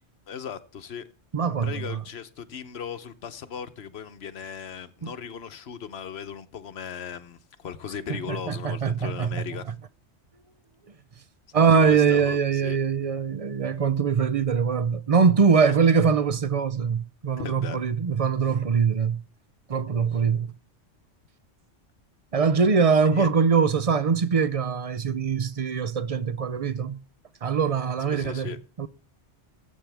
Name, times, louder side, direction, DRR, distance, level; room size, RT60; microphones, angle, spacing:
voice 1, 0.3-1.1 1.5-9.7 11.5-12.8 17.4-17.8 23.1-23.3 28.1-28.6, left 7 dB, 60° left, 1.1 m, -37 dB
voice 2, 1.3-2.0 5.0-5.1 8.3-9.8 11.5-19.2 19.7-20.5 22.3-27.0 27.4-28.9, right 6 dB, 40° right, 0.6 m, -23 dB
19.0 x 8.4 x 3.4 m
omnidirectional pair, 1.3 m